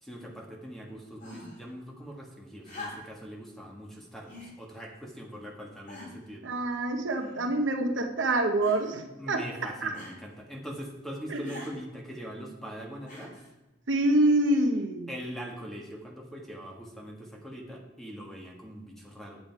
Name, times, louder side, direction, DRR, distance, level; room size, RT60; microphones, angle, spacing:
voice 1, 0.0-6.5 9.2-13.4 15.1-19.4, equal, ahead, -1 dB, 1.7 m, -42 dB
sound 1, 1.2-1.7 2.6-3.3 4.3-4.6 5.3-5.4 5.9-6.3 7.2-7.7 8.6-9.0 9.9-10.2 11.4-11.8 13.1-13.5 14.6-14.7, left 2 dB, 45° left, 3.0 m, -44 dB
voice 2, 6.4-9.9 11.3-11.6 13.9-15.1, right 1 dB, 80° right, 4 dB, 0.9 m, -26 dB
8.3 x 7.8 x 4.7 m, 1.0 s
head